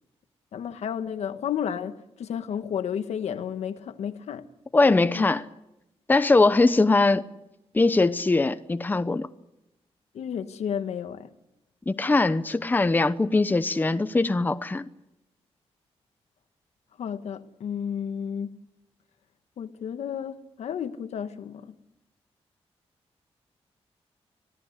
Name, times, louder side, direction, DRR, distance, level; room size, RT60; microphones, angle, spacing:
voice 1, 0.5-4.5 5.1-5.2 10.1-11.3 17.0-18.6 19.6-21.7, left 8 dB, 85° left, 1.5 m, -32 dB
voice 2, 4.7-5.4 6.1-7.2 7.7-9.3 11.9-14.8, left 3 dB, 15° left, 0.8 m, -21 dB
26.0 x 17.5 x 8.2 m
wide cardioid pair, 125°, 11 cm